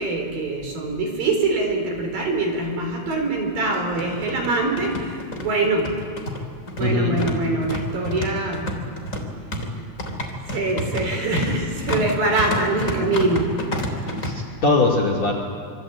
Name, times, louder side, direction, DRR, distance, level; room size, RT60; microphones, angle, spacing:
voice 1, 0.0-5.9 6.8-8.8 10.5-13.5, right 2 dB, 50° right, 2 dB, 5.6 m, -24 dB
sound 1, 2.3-2.4 2.6-2.7 3.6-14.3, left 1 dB, 20° left, 2.7 m, -29 dB
voice 2, 6.8-7.1 14.0-15.3, left 2 dB, 40° left, 1 dB, 2.9 m, -21 dB
26.5 x 26.5 x 8.6 m, 2.2 s
omnidirectional pair, 5.7 m